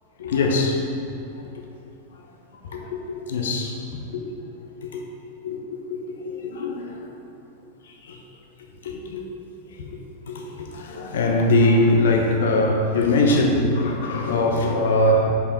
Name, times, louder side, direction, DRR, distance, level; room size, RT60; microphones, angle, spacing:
voice 1, 0.2-1.4 2.1-2.2 2.5-4.2 4.8-5.0 5.4-7.2 7.8-8.2 8.8-9.3 9.8-15.3, left 2 dB, 60° left, 2 dB, 0.8 m, -23 dB
6.6 x 5.6 x 5.2 m, 2.6 s
figure-of-eight pair, 90°, 0 cm